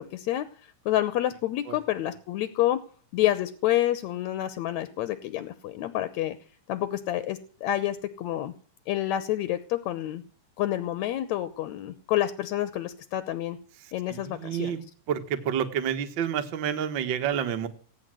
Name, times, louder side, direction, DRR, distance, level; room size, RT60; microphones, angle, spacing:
voice 1, 0.0-2.8 3.1-6.4 6.7-8.5 8.9-10.2 10.6-13.6 13.9-14.7, left 13 dB, 70° left, 12 dB, 2.0 m, -28 dB
voice 2, 13.8-14.8 15.1-17.7, right 9 dB, 50° right, 7 dB, 1.5 m, -29 dB
17.0 x 9.8 x 7.6 m, 0.43 s
omnidirectional pair, 4.0 m